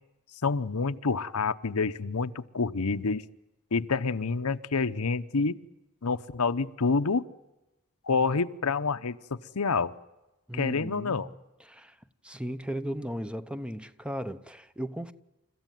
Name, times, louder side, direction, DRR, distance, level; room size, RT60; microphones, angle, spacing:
voice 1, 0.4-3.2 3.7-5.6 6.0-7.2 8.0-9.2 9.5-9.9 10.5-11.3, left 4 dB, 80° left, 0.9 m, -27 dB
voice 2, 10.5-11.3 11.6-12.0 12.2-15.1, equal, 5° right, 0.8 m, -36 dB
29.5 x 14.5 x 9.3 m
head